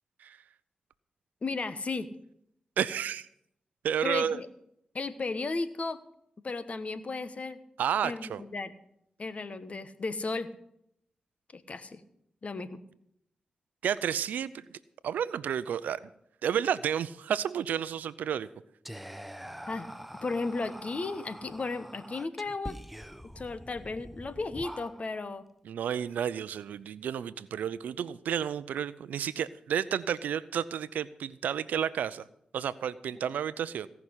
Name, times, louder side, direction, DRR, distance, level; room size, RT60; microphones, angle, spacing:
voice 1, 1.4-2.1 4.0-4.5 4.9-6.0 6.4-7.6 8.0-8.7 9.2-10.5 11.5-12.0 12.4-12.8 19.7-19.9 20.2-22.8 23.2-25.4 33.1-33.2, left 3 dB, 55° left, 13 dB, 1.3 m, -34 dB
voice 2, 2.8-3.3 3.8-4.4 7.8-8.4 13.8-14.6 15.0-16.0 16.4-18.5 25.6-32.2 32.5-33.9, right 9 dB, 90° right, 17 dB, 0.5 m, -31 dB
Whispering, 18.8-25.3, equal, ahead, 1.0 m, -45 dB
17.5 x 6.0 x 9.8 m, 0.75 s
supercardioid pair, 40°, 3 cm